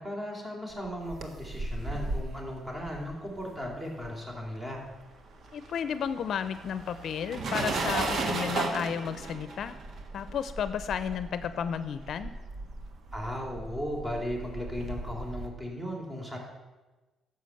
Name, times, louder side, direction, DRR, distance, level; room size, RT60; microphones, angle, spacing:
voice 1, 0.0-4.8 13.1-16.4, equal, 20° right, 0 dB, 3.7 m, -36 dB
sound 1, 0.8-4.5 4.7-15.5, right 3 dB, 55° right, 1.5 m, -36 dB
voice 2, 5.5-9.8 10.1-12.3, left 8 dB, 65° left, 12 dB, 0.7 m, -33 dB
11.0 x 7.0 x 7.9 m, 1.2 s
cardioid pair, 90°, 0 cm